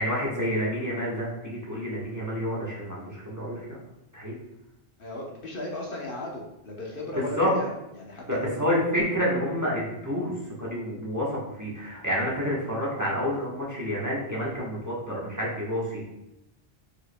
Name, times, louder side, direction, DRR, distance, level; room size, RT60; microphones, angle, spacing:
voice 1, 0.0-3.8 4.1-4.3 7.1-7.5 8.3-10.3 10.6-16.1, equal, 15° right, -6 dB, 1.1 m, -29 dB
voice 2, 5.0-8.6, left 1 dB, 55° left, -2 dB, 1.0 m, -36 dB
4.9 x 4.5 x 2.2 m, 0.88 s
omnidirectional pair, 1.1 m